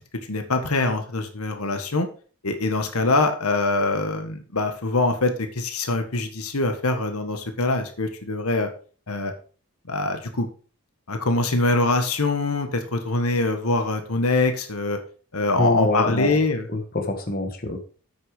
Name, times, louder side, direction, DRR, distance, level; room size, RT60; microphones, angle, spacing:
voice 1, 0.3-2.1 2.4-8.7 9.1-9.3 9.9-10.5 11.1-15.0 15.3-16.7, left 2 dB, 80° left, 6 dB, 1.5 m, -24 dB
voice 2, 15.5-16.4 16.7-17.8, left 2 dB, 40° left, 5 dB, 1.5 m, -24 dB
8.8 x 6.5 x 4.9 m, 0.40 s
head